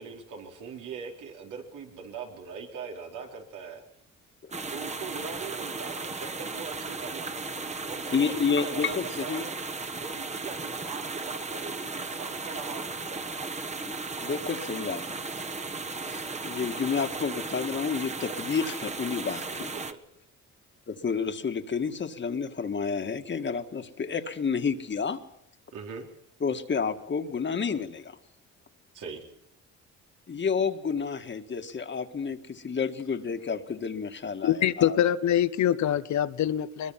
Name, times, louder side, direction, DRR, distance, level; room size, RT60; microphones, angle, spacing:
voice 1, 0.0-3.9 4.7-7.4 7.8-9.5 10.0-13.4 19.7-20.0 25.7-26.1 28.9-29.2, right 5 dB, 85° right, 4.3 m, -41 dB
sound 1, 4.5-19.9, right 3 dB, 20° right, 1.4 m, -36 dB
voice 2, 8.1-9.4 13.8-15.6 16.1-19.7 20.9-25.2 26.4-28.2 30.3-35.0, left 5 dB, 40° left, 1.8 m, -30 dB
voice 3, 34.4-36.9, left 11 dB, 70° left, 1.1 m, -24 dB
22.0 x 21.5 x 5.8 m
cardioid pair, 90°, 30 cm